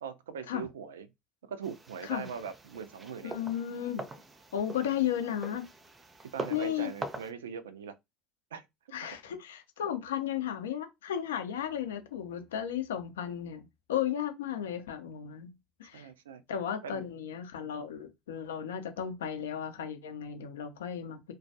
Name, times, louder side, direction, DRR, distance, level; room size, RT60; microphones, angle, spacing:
voice 1, 0.0-1.1 1.4-3.4 6.3-8.0 8.5-8.6 9.0-9.2 15.9-16.4 16.8-17.1, right 6 dB, 80° right, 0.3 m, -41 dB
sound 1, 1.6-7.3, right 2 dB, 25° right, 0.5 m, -43 dB
voice 2, 3.2-4.0 4.5-5.6 6.5-6.9 8.9-15.5 15.8-16.1 16.5-21.3, left 9 dB, 80° left, 0.5 m, -34 dB
2.2 x 2.0 x 2.7 m
hypercardioid pair, 65°, 0 cm